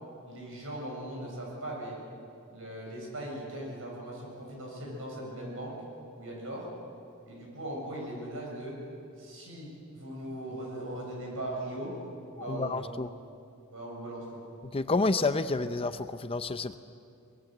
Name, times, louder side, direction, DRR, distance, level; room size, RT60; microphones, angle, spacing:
voice 1, 0.2-2.0 2.5-5.8 6.2-6.7 7.3-8.8 9.2-11.9 12.4-13.0 13.7-14.4, right 1 dB, 65° right, -1 dB, 7.4 m, -39 dB
voice 2, 12.4-13.1 14.7-16.8, left 3 dB, 25° left, 11 dB, 0.6 m, -29 dB
24.0 x 20.5 x 7.8 m, 2.5 s
head